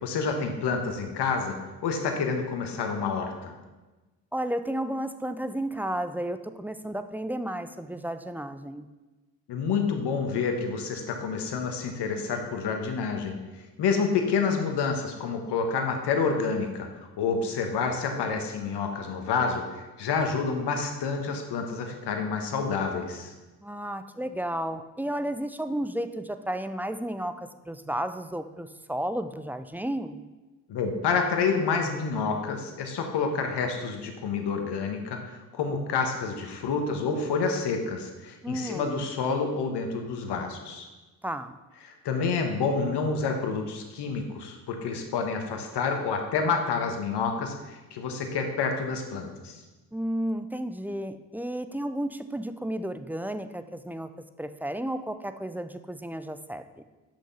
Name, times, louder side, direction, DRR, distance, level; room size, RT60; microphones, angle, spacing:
voice 1, 0.0-3.5 9.5-13.4 13.8-16.9 17.2-23.3 30.7-35.2 35.5-40.9 41.8-49.6, left 5 dB, 65° left, 4 dB, 1.6 m, -28 dB
voice 2, 4.3-8.9 23.6-30.3 38.4-38.9 41.2-41.6 49.9-54.1 54.4-56.7, right 1 dB, 5° right, 10 dB, 0.6 m, -32 dB
8.6 x 6.3 x 5.7 m, 1.2 s
hypercardioid pair, 45°, 44 cm